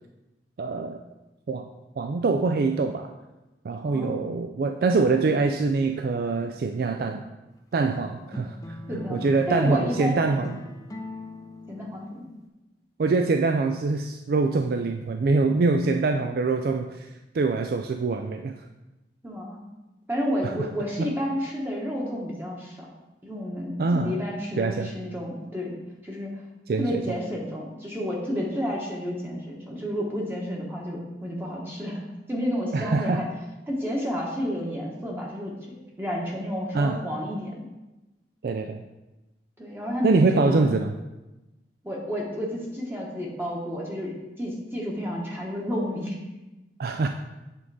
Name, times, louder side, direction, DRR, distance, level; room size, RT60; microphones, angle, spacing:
voice 1, 0.6-1.0 1.5-1.7 2.0-3.1 3.6-7.2 7.7-8.6 8.9-10.5 13.0-17.1 17.3-18.5 20.4-20.7 21.0-21.1 23.8-24.2 24.6-24.9 26.7-27.2 32.7-33.2 36.7-37.0 38.4-38.8 40.0-40.9 46.8-47.1, right 3 dB, 55° right, 5 dB, 0.3 m, -24 dB
sound 1, 8.3-12.5, left 1 dB, 20° left, 0.6 m, -40 dB
voice 2, 8.9-9.2 9.5-10.5 11.7-12.3 19.2-19.6 20.1-22.9 23.2-26.3 26.8-32.0 32.3-33.3 33.7-37.5 39.6-40.7 41.8-46.2, equal, 10° right, -3 dB, 1.1 m, -31 dB
8.4 x 3.7 x 4.7 m, 1.0 s
head